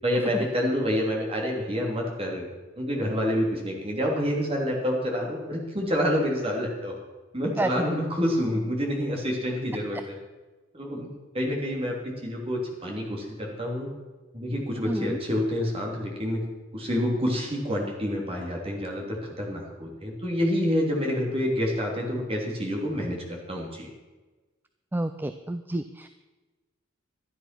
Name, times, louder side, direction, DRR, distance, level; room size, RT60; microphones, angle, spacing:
voice 1, 0.0-2.5 2.7-6.9 7.3-10.2 10.7-11.1 11.3-13.9 14.3-16.4 16.7-23.9, equal, 30° right, -1 dB, 3.1 m, -28 dB
voice 2, 14.9-15.2 24.9-26.1, right 1 dB, 10° right, 9 dB, 0.4 m, -29 dB
12.5 x 10.5 x 6.0 m, 1.2 s
head